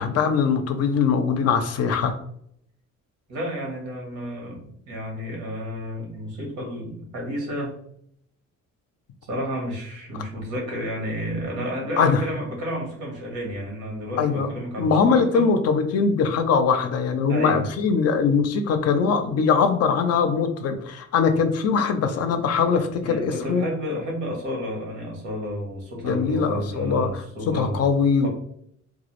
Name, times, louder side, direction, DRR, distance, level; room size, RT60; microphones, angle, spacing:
voice 1, 0.0-2.1 10.1-10.2 12.0-12.2 14.2-14.5 14.8-23.6 26.0-28.3, left 5 dB, 55° left, 8 dB, 0.4 m, -22 dB
voice 2, 3.3-7.8 9.2-15.5 17.3-17.7 23.0-27.9 28.2-28.3, equal, 85° right, 0 dB, 1.0 m, -31 dB
2.3 x 2.0 x 2.9 m, 0.68 s
cardioid pair, 90°, 30 cm